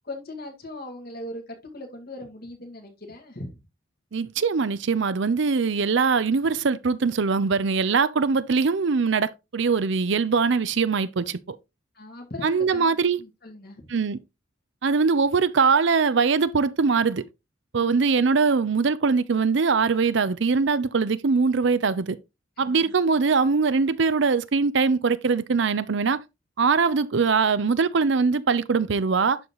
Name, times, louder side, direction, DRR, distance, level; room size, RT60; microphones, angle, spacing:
voice 1, 0.0-3.5 11.9-13.9 17.8-18.0 22.6-22.9, left 1 dB, 50° left, 2.0 m, -39 dB
voice 2, 4.1-11.6 12.4-13.2 13.9-14.2 14.8-17.2 17.7-22.2 22.6-26.2 26.6-29.4, right 5 dB, 60° right, 0.5 m, -22 dB
11.5 x 4.0 x 3.0 m
head